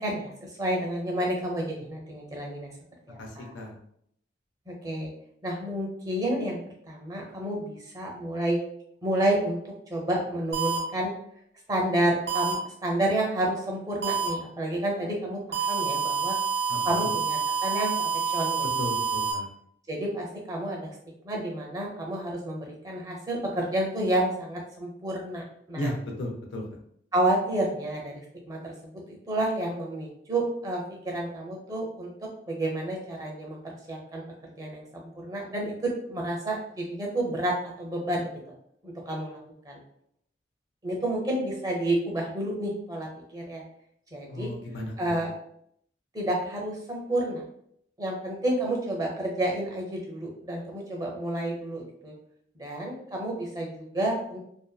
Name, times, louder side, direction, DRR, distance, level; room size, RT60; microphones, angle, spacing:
voice 1, 0.0-2.7 3.1-3.5 4.7-5.1 5.4-6.6 6.9-8.6 9.0-9.6 9.9-11.1 11.7-16.3 16.8-18.6 19.9-20.9 21.2-25.9 27.1-34.2 34.6-38.3 38.8-39.4 39.6-39.8 40.8-43.1 43.3-43.6 44.1-44.5 45.0-45.3 46.1-47.4 48.0-52.1 52.6-54.4, right 1 dB, 20° right, -1 dB, 0.5 m, -30 dB
voice 2, 3.2-3.7 16.7-17.1 18.8-19.5 25.7-26.6 44.3-45.2, left 1 dB, 80° left, 1 dB, 0.6 m, -35 dB
sound 1, 10.5-10.8 12.3-12.5 14.0-14.3 15.5-19.3, right 6 dB, 75° right, 0.7 m, -27 dB
2.6 x 2.3 x 2.2 m, 0.69 s
head